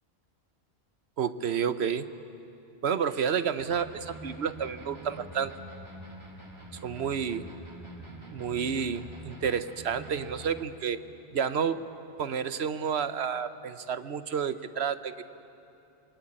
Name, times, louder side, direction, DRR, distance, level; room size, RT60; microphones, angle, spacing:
voice 1, 1.2-2.1 2.8-5.5 6.8-7.5 8.3-11.0 11.3-11.9 12.2-15.2, right 7 dB, 75° right, 12 dB, 1.1 m, -30 dB
sound 1, 3.6-10.6, right 1 dB, 25° right, 2.5 m, -45 dB
27.5 x 22.0 x 8.8 m, 2.8 s
omnidirectional pair, 1.1 m